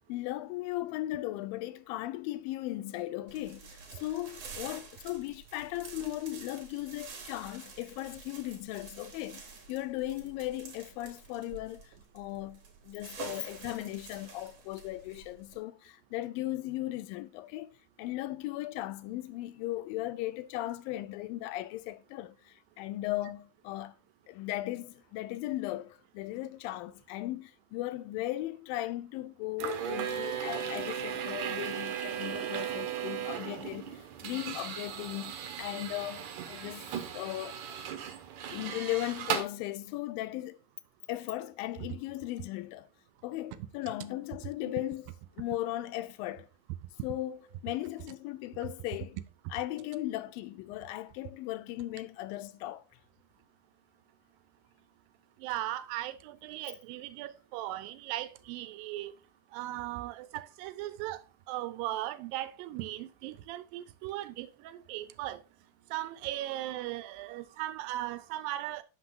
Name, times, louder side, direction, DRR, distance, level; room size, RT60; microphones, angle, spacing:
voice 1, 0.0-17.7 18.0-23.9 24.3-37.7 38.5-40.6 41.1-42.9 43.2-45.1 45.4-46.5 47.0-49.2 49.5-52.8, left 16 dB, 90° left, 2.3 m, -37 dB
sound 1, 3.3-15.6, right 4 dB, 55° right, 2.1 m, -48 dB
sound 2, 29.6-39.4, right 8 dB, 70° right, 2.0 m, -37 dB
voice 2, 55.4-59.1 59.5-61.2 61.5-65.4 65.9-68.8, right 15 dB, 90° right, 2.3 m, -38 dB
6.1 x 5.9 x 3.7 m
omnidirectional pair, 4.0 m